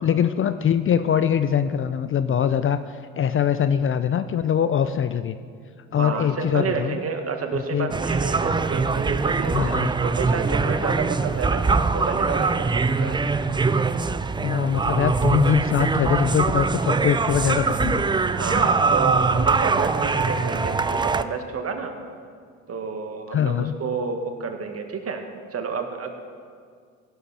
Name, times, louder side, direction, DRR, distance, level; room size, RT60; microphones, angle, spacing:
voice 1, 0.0-5.4 5.9-7.0 7.5-7.9 9.5-9.9 14.4-18.1 23.3-23.7, left 9 dB, 35° left, 12 dB, 0.6 m, -23 dB
voice 2, 6.0-13.2 18.2-22.0 22.7-26.1, right 5 dB, 40° right, 5 dB, 1.8 m, -30 dB
sound 1, 7.9-21.2, right 4 dB, 15° right, 0.5 m, -23 dB
16.5 x 11.0 x 4.3 m, 2.1 s
hypercardioid pair, 75°, 37 cm